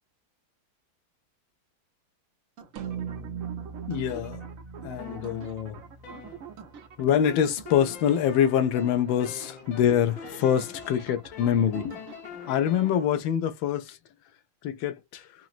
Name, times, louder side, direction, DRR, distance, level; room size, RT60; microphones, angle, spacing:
sound 1, 2.6-13.2, right 7 dB, 70° right, 0.8 m, -47 dB
sound 2, 2.8-7.2, right 7 dB, 90° right, 1.5 m, -39 dB
voice 1, 3.9-4.4 4.8-5.8 7.0-12.0 12.5-14.0 14.6-15.2, left 9 dB, 75° left, 1.3 m, -25 dB
sound 3, 5.0-6.8 7.2-13.0, left 8 dB, 55° left, 1.2 m, -44 dB
3.9 x 2.0 x 2.3 m
omnidirectional pair, 2.3 m